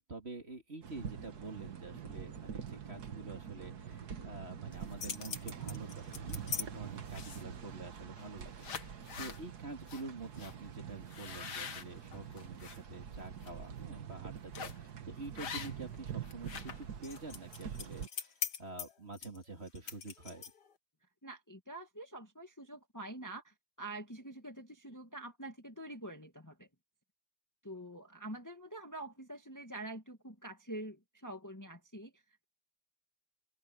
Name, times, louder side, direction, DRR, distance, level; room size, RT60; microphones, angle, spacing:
voice 1, 0.0-20.4, right 3 dB, 35° right, 2.8 m, -47 dB
sound 1, 0.8-18.1, right 8 dB, 60° right, 1.8 m, -45 dB
sound 2, 4.7-6.7 7.1-7.6 8.2-8.3 8.6-9.4 9.9-10.0 10.4-10.5 11.1-12.8 13.2-13.5 14.5-14.9 15.4-16.0 16.2-20.7, left 7 dB, 60° left, 2.1 m, -42 dB
voice 2, 21.2-26.7 27.6-32.4, right 1 dB, 10° left, 1.8 m, -46 dB
open air
omnidirectional pair, 2.0 m